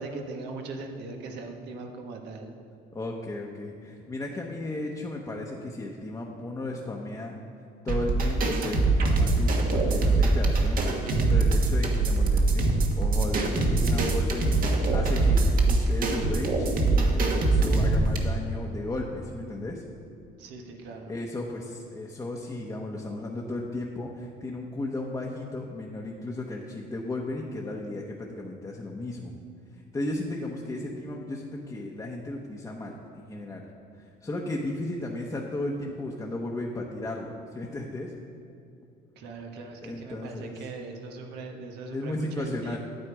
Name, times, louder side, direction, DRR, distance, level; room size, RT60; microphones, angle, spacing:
voice 1, 0.0-2.5 20.4-21.1 39.2-42.8, right 3 dB, 85° right, 3 dB, 1.4 m, -40 dB
voice 2, 2.9-7.3 7.8-13.4 13.7-19.8 21.1-29.3 29.7-33.7 34.0-38.1 39.8-40.7 41.9-42.8, left 2 dB, 20° left, -1 dB, 0.9 m, -35 dB
sound 1, 7.9-18.2, right 2 dB, 55° right, 1.5 m, -23 dB
9.2 x 8.6 x 4.8 m, 2.6 s
cardioid pair, 110°, 17 cm